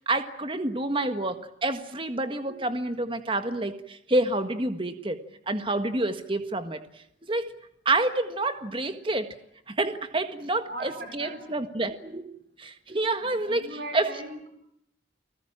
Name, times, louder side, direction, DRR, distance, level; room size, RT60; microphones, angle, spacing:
voice 1, 0.0-5.2 5.5-6.8 7.3-7.5 7.9-9.3 9.7-12.3 12.6-13.7 13.9-14.1, right 2 dB, 30° right, 8 dB, 1.7 m, -28 dB
voice 2, 10.7-11.5 13.2-14.5, right 1 dB, 55° right, 2 dB, 5.7 m, -39 dB
30.0 x 20.0 x 8.9 m, 0.73 s
head